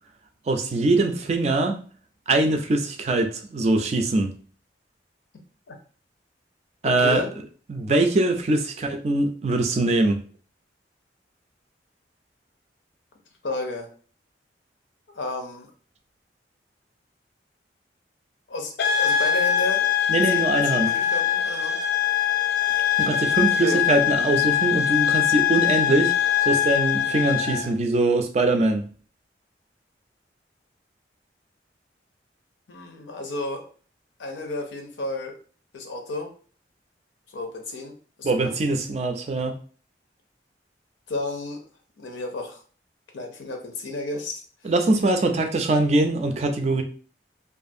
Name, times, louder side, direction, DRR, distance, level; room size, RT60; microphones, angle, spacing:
voice 1, 0.5-1.8 2.3-4.3 6.8-7.2 7.7-10.3 20.1-20.9 23.0-28.9 38.2-39.5 44.6-46.8, right 2 dB, 35° right, 5 dB, 0.3 m, -22 dB
voice 2, 6.8-7.3 13.4-13.9 15.1-15.7 18.5-19.8 20.3-21.8 23.6-23.8 32.7-33.7 34.2-35.4 35.7-36.3 37.3-37.9 38.2-38.6 41.1-41.6 42.0-42.6 43.1-44.7, left 2 dB, 90° left, 3 dB, 0.6 m, -32 dB
sound 1, 18.8-27.7, left 10 dB, 55° left, 0.3 m, -22 dB
2.5 x 2.4 x 2.5 m, 0.41 s
head